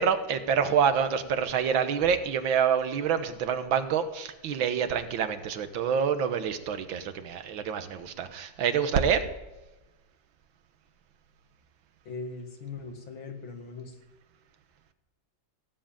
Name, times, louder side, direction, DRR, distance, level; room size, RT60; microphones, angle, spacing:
voice 1, 0.0-9.2, right 7 dB, 80° right, 10 dB, 1.8 m, -27 dB
voice 2, 12.0-14.0, left 4 dB, 80° left, 3 dB, 2.7 m, -40 dB
16.5 x 7.5 x 8.8 m, 1.1 s
omnidirectional pair, 2.1 m